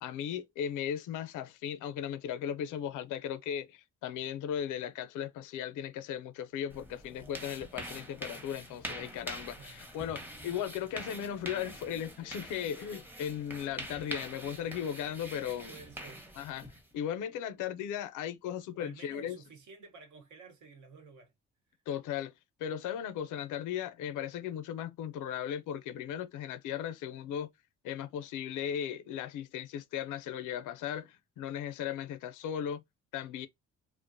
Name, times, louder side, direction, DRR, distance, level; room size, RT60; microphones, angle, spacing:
voice 1, 0.0-15.8 16.4-19.4 21.9-22.3 22.6-27.5 27.8-32.8 33.1-33.5, left 9 dB, 85° left, 0.5 m, -37 dB
sound 1, 6.7-16.9, right 1 dB, 5° right, 0.7 m, -45 dB
voice 2, 15.7-16.3 18.8-21.3, right 4 dB, 75° right, 1.0 m, -52 dB
2.5 x 2.0 x 2.6 m
cardioid pair, 90°, 30 cm